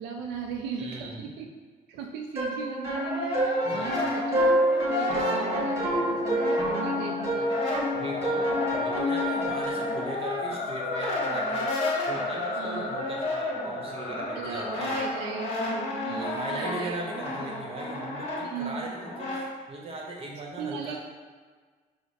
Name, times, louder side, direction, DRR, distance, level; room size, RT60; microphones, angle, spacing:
voice 1, 0.0-1.5 1.9-4.6 4.9-7.8 12.6-12.9 14.3-17.0 18.4-18.9 20.6-21.0, right 6 dB, 85° right, 2 dB, 0.4 m, -38 dB
voice 2, 0.8-1.3 3.6-4.1 7.9-11.7 12.1-14.9 16.1-21.0, right 2 dB, 35° right, -1 dB, 0.9 m, -38 dB
sound 1, 2.4-10.0, equal, 15° right, 1.2 m, -27 dB
Brass instrument, 2.6-7.0 7.3-19.5, left 2 dB, 40° left, 1.3 m, -33 dB
sound 2, 4.7-17.1, left 3 dB, 85° left, 0.5 m, -39 dB
4.9 x 2.1 x 4.1 m, 1.5 s
cardioid pair, 110°, 17 cm